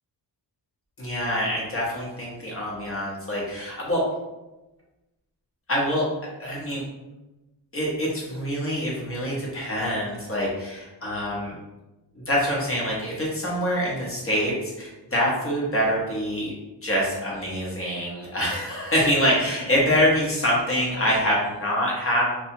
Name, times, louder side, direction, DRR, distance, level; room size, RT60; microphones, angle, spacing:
voice 1, 1.0-4.0 5.7-6.1 6.4-6.8 7.7-11.5 12.2-16.5 16.8-22.3, equal, 30° left, -4 dB, 0.8 m, -25 dB
2.7 x 2.3 x 2.6 m, 1.0 s
wide cardioid pair, 145°, 43 cm